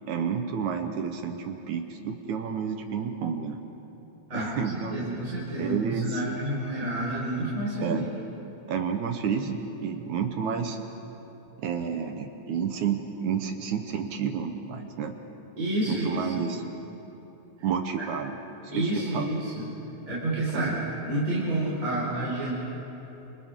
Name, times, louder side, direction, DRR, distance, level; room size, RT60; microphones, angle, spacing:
voice 1, 0.1-3.6 4.3-5.0 5.6-6.2 7.8-8.1 8.7-10.8 11.6-15.2 15.9-16.6 17.6-18.4 18.8-19.3 20.5-20.8, right 7 dB, 70° right, 5 dB, 2.1 m, -30 dB
voice 2, 4.3-8.0 15.6-16.4 18.7-19.7 20.1-20.7 21.0-22.5, right 1 dB, 20° right, -8 dB, 5.3 m, -29 dB
29.5 x 28.5 x 3.8 m, 3.0 s
omnidirectional pair, 4.1 m